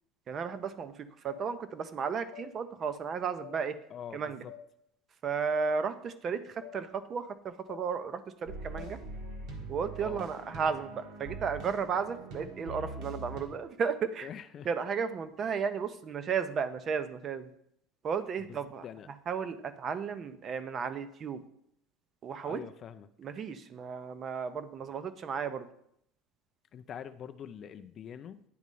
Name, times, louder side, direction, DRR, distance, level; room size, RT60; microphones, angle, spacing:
voice 1, 0.3-3.8 4.1-4.4 5.2-9.0 9.7-14.3 14.7-17.5 18.0-18.8 19.3-21.4 22.2-22.6 23.2-25.7, right 6 dB, 30° right, 12 dB, 0.5 m, -34 dB
sound 1, 1.3-1.4 2.3-2.5 3.4-3.6 4.5-4.6 5.5-5.7 6.6-6.8 7.7-7.8 8.8-8.9, left 11 dB, 90° left, 0.7 m, -46 dB
voice 2, 3.9-4.5 10.0-10.3 14.2-14.7 18.5-18.6 18.8-19.1 22.4-23.1 26.7-28.4, left 8 dB, 35° left, 10 dB, 0.3 m, -44 dB
sound 2, 8.5-13.5, right 3 dB, 55° right, 1.4 m, -43 dB
9.3 x 3.1 x 5.3 m, 0.72 s
cardioid pair, 155°, 0 cm